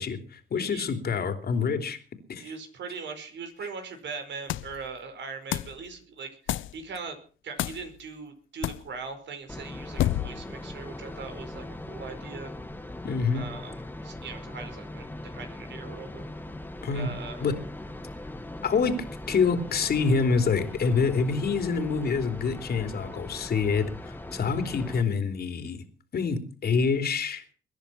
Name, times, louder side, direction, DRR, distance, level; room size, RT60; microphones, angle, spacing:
voice 1, 0.0-2.0 2.3-2.5 13.0-13.5 16.8-17.1 17.4-17.5 18.6-25.8 26.1-27.4, left 5 dB, 50° left, 7 dB, 3.3 m, -26 dB
voice 2, 0.6-0.9 2.4-7.2 7.4-12.5 13.3-16.3 16.9-17.4, right 5 dB, 65° right, 8 dB, 5.0 m, -40 dB
sound 1, 4.5-4.8 5.5-5.8 6.5-6.8 7.6-7.9 8.6-8.9 10.0-10.5, left 14 dB, 80° left, 0.7 m, -29 dB
sound 2, 9.5-25.0, left 1 dB, 10° left, 1.8 m, -40 dB
22.0 x 10.5 x 5.8 m, 0.40 s
cardioid pair, 90°, 20 cm